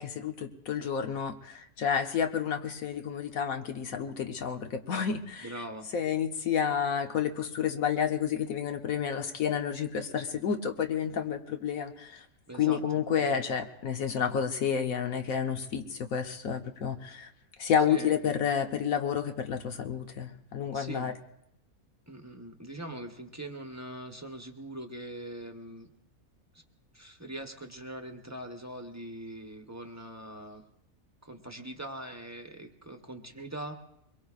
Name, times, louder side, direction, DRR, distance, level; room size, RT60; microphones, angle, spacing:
voice 1, 0.0-5.5 5.9-12.2 12.6-17.3 17.6-21.1, left 7 dB, 70° left, 6 dB, 1.3 m, -30 dB
voice 2, 5.4-5.9 12.5-13.4 17.9-18.2 20.7-21.1 22.1-25.9 26.5-26.6 26.9-30.6 31.2-33.7, right 1 dB, 15° right, 3 dB, 0.9 m, -42 dB
24.0 x 22.0 x 2.4 m, 0.76 s
omnidirectional pair, 1.5 m